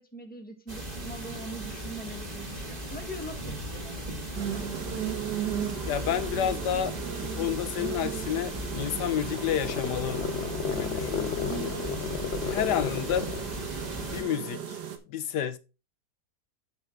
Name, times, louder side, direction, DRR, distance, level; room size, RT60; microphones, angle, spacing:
voice 1, 0.0-4.6, right 1 dB, 5° left, 1.4 m, -43 dB
sound 1, 0.7-14.2, right 1 dB, 25° right, 2.0 m, -37 dB
sound 2, 4.3-15.0, right 8 dB, 85° right, 1.8 m, -36 dB
voice 2, 5.9-6.9 7.2-10.2 10.7-11.8 12.4-13.3 14.1-14.8 15.1-15.6, left 9 dB, 85° left, 1.5 m, -30 dB
sound 3, 8.6-13.5, left 7 dB, 60° left, 0.7 m, -34 dB
8.3 x 6.7 x 3.7 m
omnidirectional pair, 1.8 m